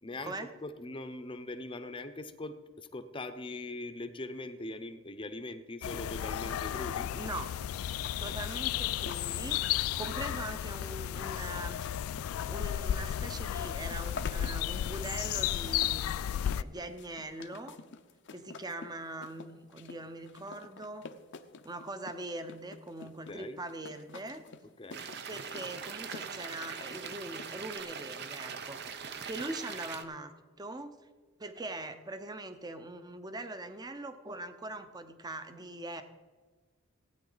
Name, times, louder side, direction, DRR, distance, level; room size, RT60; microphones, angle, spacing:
voice 1, 0.0-7.1 23.3-23.6 24.8-25.1, left 2 dB, 25° left, 9 dB, 0.7 m, -41 dB
sound 1, 5.8-16.6, left 11 dB, 85° left, 0.3 m, -33 dB
voice 2, 7.1-7.5 8.2-9.6 10.0-11.9 12.5-17.8 18.3-21.1 21.6-24.4 25.3-31.1 31.4-36.0, right 2 dB, 20° right, 9 dB, 0.8 m, -42 dB
sound 2, 8.0-27.8, left 5 dB, 60° left, 0.7 m, -49 dB
sound 3, 24.9-30.0, right 6 dB, 55° right, 0.8 m, -42 dB
16.0 x 9.5 x 4.0 m, 1.4 s
head